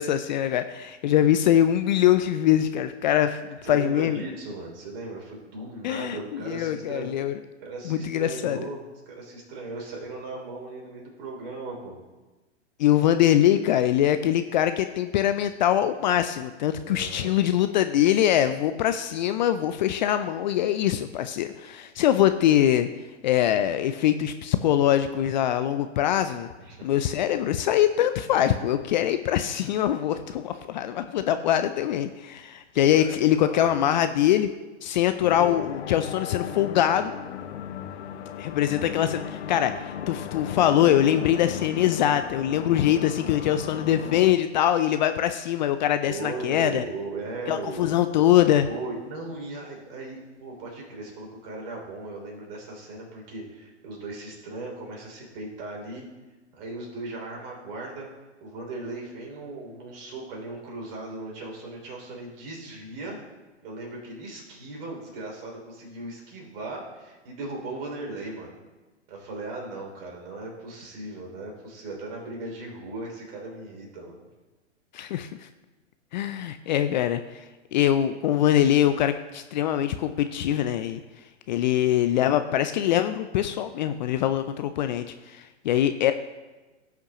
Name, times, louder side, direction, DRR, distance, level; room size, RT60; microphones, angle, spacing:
voice 1, 0.0-4.2 5.8-7.3 7.8-8.6 12.8-22.9 23.2-26.5 26.8-34.5 34.8-37.1 38.4-46.8 47.5-48.7 74.9-75.5 76.1-77.4 77.7-81.0 81.5-86.1, left 11 dB, 40° left, 10 dB, 0.4 m, -23 dB
voice 2, 3.6-7.1 7.6-11.9 16.8-17.3 26.6-27.0 32.7-34.0 46.1-47.9 48.7-56.1 56.5-58.1 58.4-63.2 63.6-68.5 69.1-74.1, right 2 dB, 50° right, -1 dB, 3.2 m, -37 dB
sound 1, 35.2-44.3, left 9 dB, 65° left, 0.8 m, -36 dB
17.0 x 5.8 x 2.9 m, 1.2 s
hypercardioid pair, 115°, 36 cm